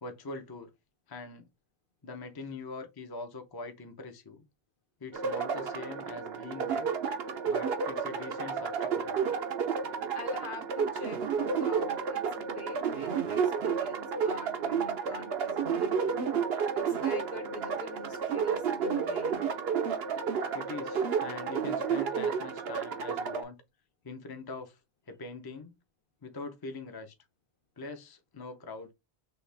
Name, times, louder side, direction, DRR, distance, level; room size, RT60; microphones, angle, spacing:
voice 1, 0.0-0.7 1.1-1.5 2.0-4.5 5.0-6.9 7.5-9.3 20.5-23.6 24.0-24.8 25.1-25.7 26.2-27.1 27.8-28.9, left 3 dB, 25° left, 0.7 m, -43 dB
sound 1, 5.1-23.4, right 6 dB, 70° right, 0.9 m, -31 dB
voice 2, 10.1-16.3 16.7-19.4, left 2 dB, 55° left, 1.0 m, -45 dB
6.4 x 2.4 x 3.4 m
omnidirectional pair, 1.1 m